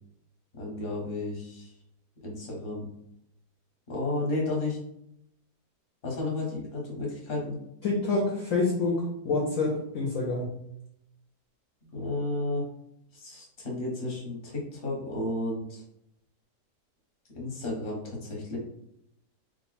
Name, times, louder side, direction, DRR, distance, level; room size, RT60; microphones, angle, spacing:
voice 1, 0.6-1.7 2.2-2.9 3.9-4.8 6.0-7.6 11.9-12.6 13.1-15.8 17.3-18.6, left 2 dB, 35° left, -2 dB, 1.1 m, -32 dB
voice 2, 7.8-10.5, left 3 dB, 60° left, -2 dB, 1.0 m, -27 dB
3.3 x 2.2 x 4.0 m, 0.77 s
omnidirectional pair, 1.8 m